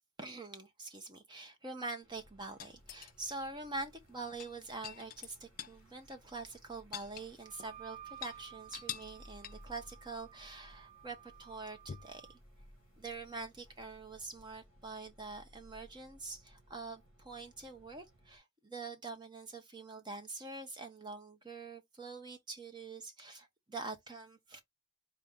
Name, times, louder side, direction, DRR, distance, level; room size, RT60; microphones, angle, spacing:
voice 1, 0.2-12.4 13.0-24.6, right 3 dB, 20° right, 0.9 m, -45 dB
sound 1, 2.0-18.4, equal, 80° right, 2.6 m, -61 dB
sound 2, 2.6-3.4 4.3-5.8 6.1-6.2 6.5-7.7 8.1-8.4 8.7-9.2 9.4-9.8 11.9-12.2 13.9-14.0, left 10 dB, 45° left, 0.4 m, -46 dB
Wind instrument woodwind instrument, 7.4-12.4, right 11 dB, 50° right, 0.9 m, -55 dB
4.4 x 2.7 x 3.6 m
head